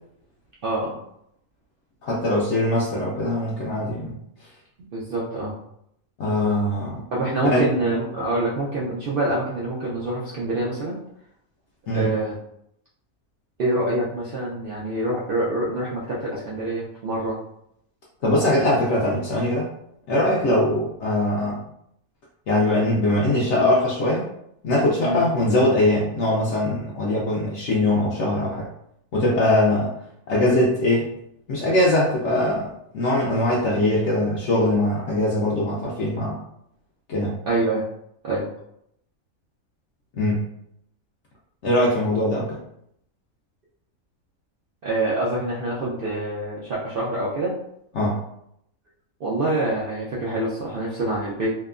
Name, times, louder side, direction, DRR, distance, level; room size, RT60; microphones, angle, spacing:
voice 1, 0.6-1.0 4.9-5.5 7.1-11.0 11.9-12.4 13.6-17.4 25.0-25.2 37.5-37.8 38.2-38.4 44.8-47.6 49.2-51.6, right 2 dB, 70° right, -6 dB, 0.5 m, -25 dB
voice 2, 2.0-4.2 6.2-7.0 7.4-7.6 11.9-12.1 18.2-19.7 20.1-21.6 22.5-24.3 24.6-28.7 29.1-29.9 30.3-31.1 31.5-36.4 37.1-37.3 40.1-40.4 41.6-42.6 47.9-48.2, left 1 dB, 65° left, -4 dB, 0.8 m, -21 dB
2.9 x 2.1 x 2.4 m, 0.74 s
omnidirectional pair, 1.5 m